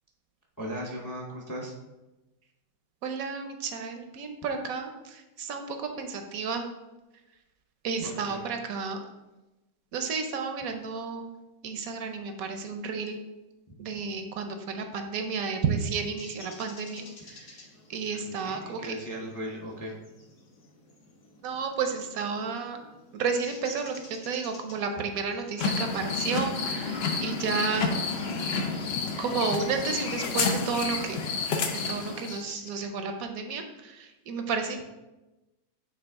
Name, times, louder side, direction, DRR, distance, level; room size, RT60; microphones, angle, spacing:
voice 1, 0.6-1.7 8.3-8.4 18.2-19.9, equal, 25° left, -2 dB, 0.4 m, -37 dB
voice 2, 3.0-6.6 7.8-9.0 9.9-11.3 11.6-13.2 13.8-17.6 17.9-19.0 21.4-22.8 23.1-27.9 29.2-31.3 31.9-34.8, right 5 dB, 65° right, 6 dB, 1.0 m, -32 dB
sound 1, 15.5-32.7, left 3 dB, 55° left, 1.4 m, -52 dB
sound 2, 25.6-32.4, left 4 dB, 80° left, 0.5 m, -30 dB
8.2 x 3.3 x 3.5 m, 1.0 s
omnidirectional pair, 1.9 m